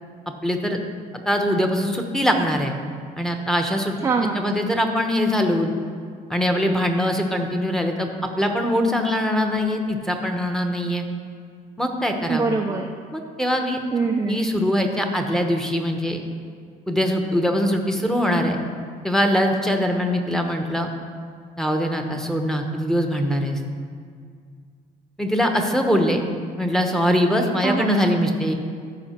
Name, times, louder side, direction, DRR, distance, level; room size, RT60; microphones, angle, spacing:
voice 1, 0.4-0.8 1.1-2.7 3.2-4.0 4.3-5.7 6.3-8.1 8.4-11.0 11.8-12.5 13.1-13.8 14.2-16.2 16.9-18.6 19.0-20.9 21.6-23.6 25.2-26.2 26.6-28.5, equal, 5° left, 3 dB, 1.0 m, -22 dB
voice 2, 4.0-4.4 12.3-12.9 13.9-14.4 27.6-28.2, right 4 dB, 20° right, 2 dB, 0.5 m, -23 dB
14.0 x 4.9 x 4.4 m, 2.1 s
cardioid pair, 110°, 17 cm